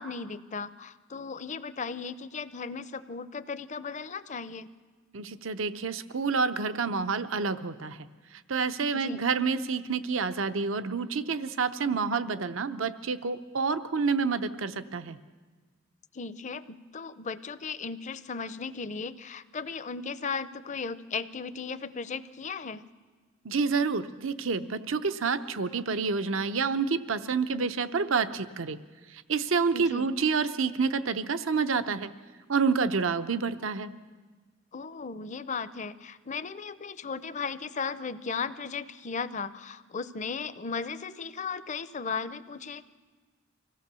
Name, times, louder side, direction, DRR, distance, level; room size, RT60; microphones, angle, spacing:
voice 1, 0.0-4.7 8.9-9.2 16.1-22.8 29.7-30.1 34.7-42.8, left 5 dB, 35° left, 14 dB, 0.6 m, -36 dB
voice 2, 5.1-8.0 8.5-15.2 23.4-28.8 29.1-32.1 32.5-33.9, right 5 dB, 80° right, 11 dB, 0.7 m, -28 dB
25.0 x 16.5 x 6.9 m, 1.4 s
head